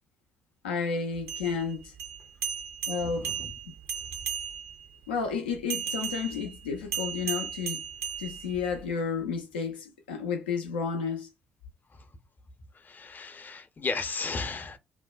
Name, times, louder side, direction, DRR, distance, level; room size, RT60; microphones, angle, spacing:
voice 1, 0.6-1.9 2.9-3.3 5.1-7.8 8.2-11.3, left 5 dB, 85° left, 0.3 m, -31 dB
sound 1, 1.2-4.9 5.7-8.9, right 8 dB, 75° right, 0.5 m, -35 dB
voice 2, 3.0-3.5 11.9-12.1 12.7-14.8, left 4 dB, 35° left, 0.5 m, -35 dB
2.6 x 2.1 x 2.2 m
hypercardioid pair, 40°, 5 cm